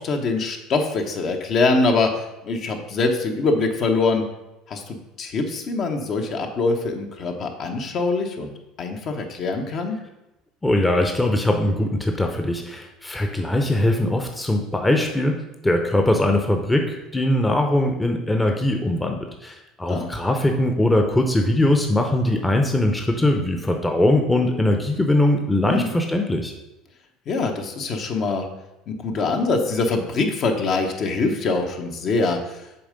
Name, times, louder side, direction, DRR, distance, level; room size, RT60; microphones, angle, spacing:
voice 1, 0.0-2.1 2.4-4.2 4.7-8.5 8.8-10.0 19.9-20.1 25.6-25.9 27.3-28.4 28.9-32.4, left 3 dB, 50° left, 4 dB, 1.1 m, -23 dB
voice 2, 10.6-15.3 15.6-26.5, left 1 dB, 10° left, 3 dB, 0.8 m, -21 dB
7.0 x 3.7 x 5.2 m, 0.93 s
supercardioid pair, 100°, 0 cm